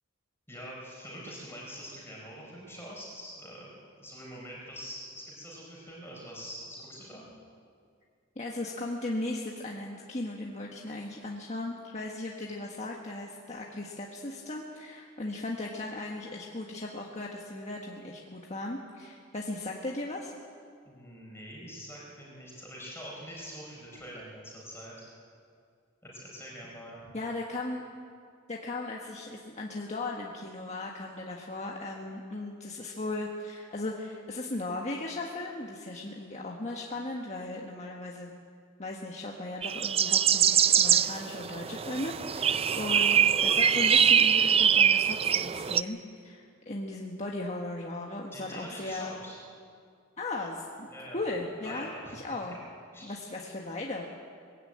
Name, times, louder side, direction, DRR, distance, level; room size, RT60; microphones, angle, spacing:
voice 1, 0.5-7.2 20.8-25.1 26.0-27.1 42.5-42.8 48.3-49.4 50.9-51.2 51.6-52.2 52.5-52.6 52.9-53.2, equal, 10° left, -4 dB, 4.6 m, -44 dB
voice 2, 8.3-20.3 27.1-27.8 28.5-38.3 38.8-46.0 46.2-49.1 50.2-50.9 51.1-52.6 53.0-54.1, left 2 dB, 35° left, -1 dB, 1.5 m, -37 dB
sound 1, 39.6-45.8, right 8 dB, 30° right, 0.4 m, -23 dB
21.0 x 16.0 x 8.8 m, 2.2 s
head